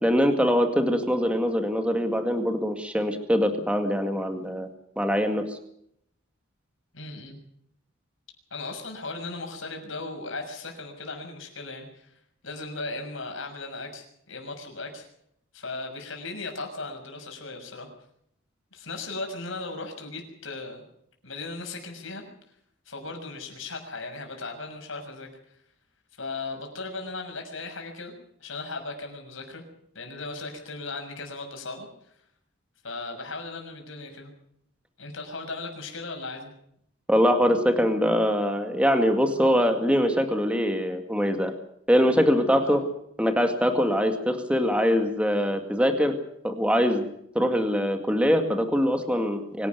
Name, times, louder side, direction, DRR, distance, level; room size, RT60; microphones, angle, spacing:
voice 1, 0.0-4.7 5.0-5.6 37.1-41.5 41.9-42.8 43.2-46.1 46.4-47.1 47.3-49.7, equal, 5° right, 6 dB, 2.0 m, -23 dB
voice 2, 6.9-7.4 8.5-12.1 12.4-15.1 15.5-17.9 18.7-20.8 21.2-22.2 22.8-25.3 26.2-28.1 28.4-29.6 29.9-31.9 32.8-34.3 35.0-36.5 42.6-42.8, left 3 dB, 70° left, 3 dB, 6.5 m, -37 dB
24.5 x 12.0 x 9.4 m, 0.72 s
head